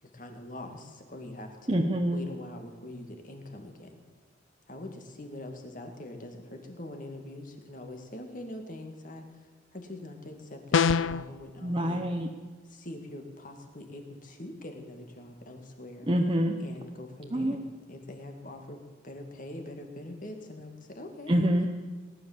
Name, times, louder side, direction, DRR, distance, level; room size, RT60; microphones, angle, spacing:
voice 1, 0.0-1.8 2.1-4.0 4.7-9.5 9.7-12.0 12.7-16.1 16.6-17.6 17.9-21.4, left 1 dB, 45° left, 4 dB, 2.1 m, -43 dB
voice 2, 1.7-2.2 11.6-12.3 16.1-16.6 17.3-17.6 21.3-21.7, equal, 25° right, 2 dB, 0.9 m, -26 dB
sound 1, 10.7-11.3, left 6 dB, 85° left, 0.5 m, -23 dB
19.0 x 10.5 x 7.4 m, 1.4 s
head